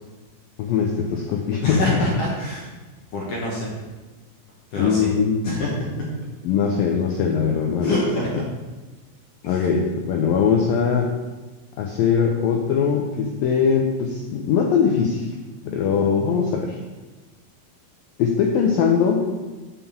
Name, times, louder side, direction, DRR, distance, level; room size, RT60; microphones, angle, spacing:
voice 1, 0.6-1.8 4.8-5.4 6.4-8.0 9.5-11.1 11.8-15.3 15.7-16.8 18.2-19.2, left 6 dB, 85° left, 1 dB, 2.0 m, -21 dB
voice 2, 1.6-2.7 3.1-3.8 4.7-5.1 5.4-6.1 7.8-8.4 9.4-9.6 15.6-15.7, left 2 dB, 65° left, -4 dB, 2.2 m, -25 dB
7.6 x 5.8 x 7.1 m, 1.2 s
omnidirectional pair, 5.1 m